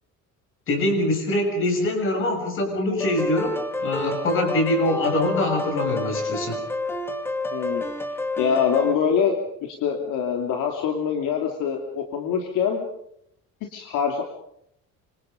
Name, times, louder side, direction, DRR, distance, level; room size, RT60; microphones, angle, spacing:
voice 1, 0.7-6.6, left 1 dB, 40° left, 4 dB, 6.8 m, -24 dB
sound 1, 3.0-8.9, left 2 dB, 5° left, 2.2 m, -29 dB
voice 2, 7.5-7.8 8.4-12.9 13.7-14.2, left 7 dB, 70° left, 2 dB, 3.0 m, -24 dB
26.5 x 25.5 x 5.2 m, 0.73 s
cardioid pair, 165°, 32 cm